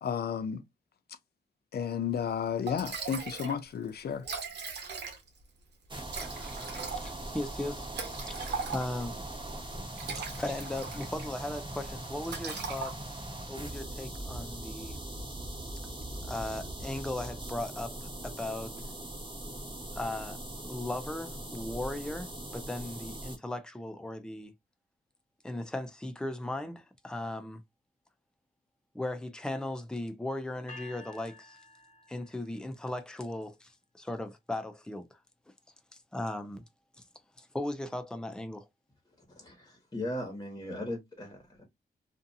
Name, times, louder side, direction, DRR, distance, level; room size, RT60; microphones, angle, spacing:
voice 1, 0.0-0.6 1.7-4.3, left 7 dB, 65° left, 0.5 m, -32 dB
Liquid, 2.3-2.4 2.7-3.6 3.9-4.0 4.1-5.4 6.1-9.1 9.8-11.3 11.6-11.9 12.2-13.3, right 5 dB, 85° right, 0.9 m, -39 dB
sound 1, 5.9-23.4, right 1 dB, 30° right, 1.2 m, -41 dB
voice 2, 6.9-9.2 10.1-13.0 13.5-15.0 16.2-18.9 19.9-24.5 25.4-27.6 28.9-31.6 32.1-35.2 36.1-36.6 37.4-38.7, left 1 dB, 5° left, 0.5 m, -37 dB
sound 2, 30.7-32.8, left 3 dB, 40° left, 1.2 m, -51 dB
voice 3, 39.3-41.7, left 1 dB, 20° left, 1.3 m, -38 dB
2.6 x 2.4 x 2.6 m
cardioid pair, 85°, 17 cm